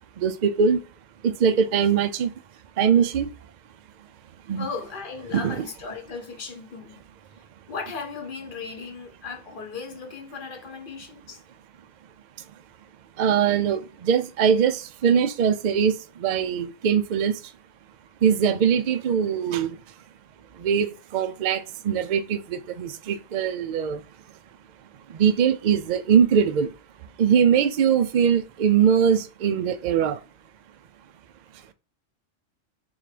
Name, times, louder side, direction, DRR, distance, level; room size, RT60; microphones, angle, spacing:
voice 1, 0.2-0.8 1.2-2.3 2.8-3.3 4.5-4.7 5.3-5.6 13.2-15.9 16.2-17.3 18.2-19.8 20.6-24.0 25.1-26.7 27.2-30.2, right 7 dB, 85° right, 0.4 m, -22 dB
voice 2, 4.6-7.0 7.7-11.4, left 5 dB, 45° left, 0.9 m, -36 dB
3.9 x 3.1 x 3.2 m
omnidirectional pair, 1.3 m